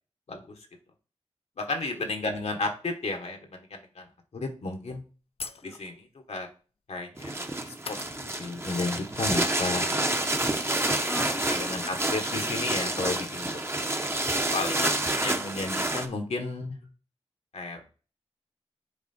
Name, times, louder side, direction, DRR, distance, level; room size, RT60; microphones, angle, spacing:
voice 1, 1.6-4.1 4.3-5.0 5.6-6.5 6.9-10.2 11.5-13.7 14.5-14.9 15.2-16.8 17.5-17.9, left 3 dB, 75° left, 4 dB, 1.3 m, -33 dB
sound 1, 4.7-4.8 5.4-6.1 7.2-7.4 7.8-8.6 8.8-8.9 9.9-10.0 10.2-11.6, left 4 dB, 60° left, 0.5 m, -44 dB
sound 2, 7.2-16.1, right 1 dB, 20° right, 0.9 m, -28 dB
voice 2, 10.8-12.0 14.6-15.4, left 1 dB, 20° left, 8 dB, 0.8 m, -41 dB
7.1 x 3.7 x 4.3 m, 0.37 s
cardioid pair, 50°, 11 cm